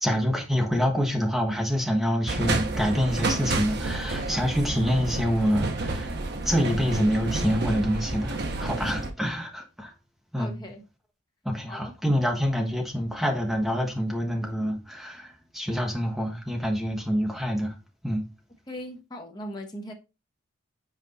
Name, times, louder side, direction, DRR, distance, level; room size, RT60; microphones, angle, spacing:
voice 1, 0.0-6.1 6.4-9.9 10.3-10.6 11.4-17.7 18.0-18.3, equal, ahead, 1.1 m, -26 dB
sound 1, 2.3-9.1, right 2 dB, 50° right, 0.9 m, -30 dB
voice 2, 10.4-10.8 11.7-11.9 18.7-19.9, equal, 20° left, 1.0 m, -39 dB
5.8 x 4.5 x 4.0 m
head